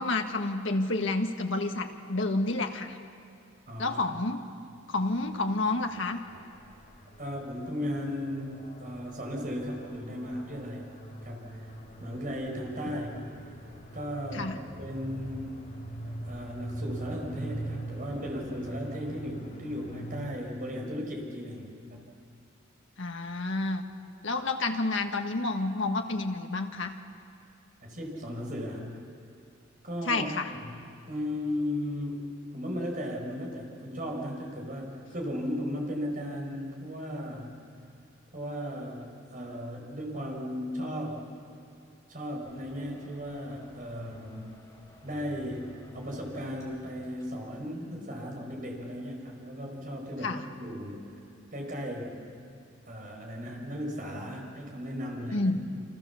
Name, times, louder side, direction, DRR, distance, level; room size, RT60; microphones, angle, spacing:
voice 1, 0.0-3.0 3.8-4.4 4.9-6.3 14.3-14.6 23.0-23.9 24.2-26.9 30.1-30.5 50.2-50.4 55.3-55.7, left 2 dB, 65° left, 5 dB, 1.6 m, -29 dB
voice 2, 3.7-4.0 7.2-10.9 11.2-13.5 13.9-15.6 16.0-22.1 27.8-29.0 29.8-30.3 30.6-37.6 38.3-41.3 42.1-44.6 45.0-51.2 51.5-52.2 52.9-55.5, equal, 40° right, 0 dB, 5.3 m, -36 dB
sound 1, 5.0-20.4, right 1 dB, 40° left, 3.5 m, -43 dB
sound 2, 42.4-47.5, left 2 dB, 15° left, 5.1 m, -53 dB
29.5 x 26.0 x 7.2 m, 2.4 s
head